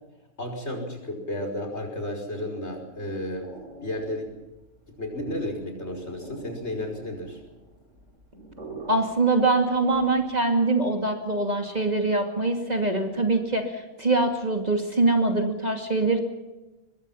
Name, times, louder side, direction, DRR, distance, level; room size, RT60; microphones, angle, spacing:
voice 1, 0.4-3.5 3.8-4.3 4.9-7.4, left 1 dB, 50° left, 3 dB, 5.8 m, -32 dB
sound 1, 2.7-10.5, right 2 dB, 60° right, 7.2 m, -46 dB
voice 2, 8.9-16.2, right 2 dB, 30° right, 4 dB, 2.6 m, -23 dB
24.0 x 22.0 x 5.7 m, 1.1 s
omnidirectional pair, 1.4 m